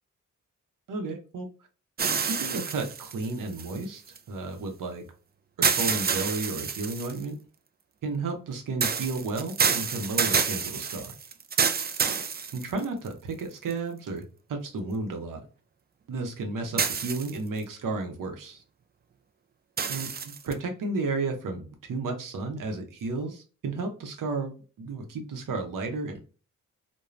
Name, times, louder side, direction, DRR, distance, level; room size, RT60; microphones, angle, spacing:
voice 1, 0.9-1.5 2.0-5.0 5.6-7.3 8.0-11.1 12.5-14.2 14.5-15.4 16.1-18.6 19.9-20.1 20.5-26.2, right 3 dB, 75° right, 4 dB, 0.8 m, -33 dB
sound 1, 2.0-4.2 5.6-7.2 8.8-13.1 13.7-13.8 16.8-17.6 19.8-20.5, right 6 dB, 30° right, 0.4 m, -28 dB
2.4 x 2.2 x 3.1 m, 0.37 s
cardioid pair, 50°, 32 cm